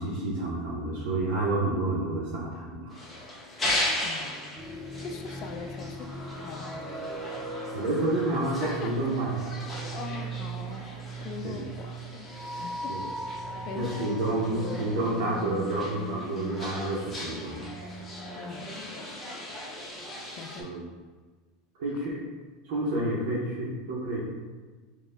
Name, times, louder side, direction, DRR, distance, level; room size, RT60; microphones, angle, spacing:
voice 1, 0.0-3.0 7.7-9.5 11.4-11.6 12.9-13.1 13.7-17.7 20.6-20.8 21.8-22.2 22.6-24.2, right 2 dB, 75° right, -7 dB, 0.8 m, -29 dB
sound 1, 2.9-20.6, left 1 dB, 15° left, 1.1 m, -38 dB
voice 2, 4.0-4.5 5.0-6.9 8.6-8.9 9.3-9.5 9.9-10.9 11.2-13.3 13.6-14.2 18.4-19.5 20.3-20.8, left 5 dB, 50° left, 5 dB, 0.4 m, -42 dB
sound 2, 4.6-18.8, right 3 dB, 15° right, 0.5 m, -39 dB
4.3 x 2.3 x 3.5 m, 1.4 s
supercardioid pair, 120°, 0 cm